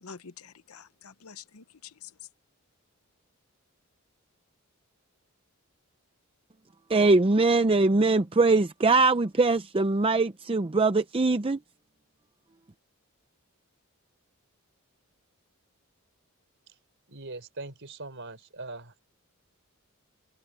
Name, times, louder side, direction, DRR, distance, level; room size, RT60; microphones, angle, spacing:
voice 1, 0.0-2.1, left 6 dB, 90° left, 0.9 m, -47 dB
voice 2, 6.9-11.6, right 3 dB, 25° right, 0.6 m, -22 dB
voice 3, 17.1-19.0, right 2 dB, 60° right, 4.6 m, -41 dB
head